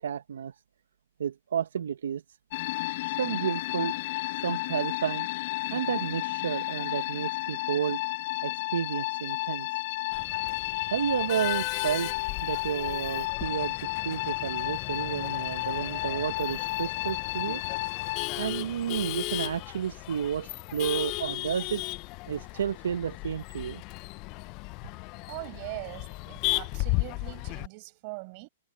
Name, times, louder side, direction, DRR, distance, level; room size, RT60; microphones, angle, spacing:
voice 1, 0.0-0.5 1.2-2.2 3.2-4.0 4.4-5.3 5.7-8.0 8.4-9.7 10.9-13.7 14.0-17.6 18.4-21.8 22.3-23.8, right 8 dB, 80° right, 1.0 m, -31 dB
sound 1, 2.5-18.3, left 20 dB, 50° left, 1.3 m, -32 dB
Male speech man speaking / Laughter / Chatter, 10.1-27.7, left 25 dB, 35° left, 0.5 m, -36 dB
voice 2, 25.3-28.5, right 30 dB, 40° right, 5.5 m, -41 dB
hypercardioid pair, 145°, 0 cm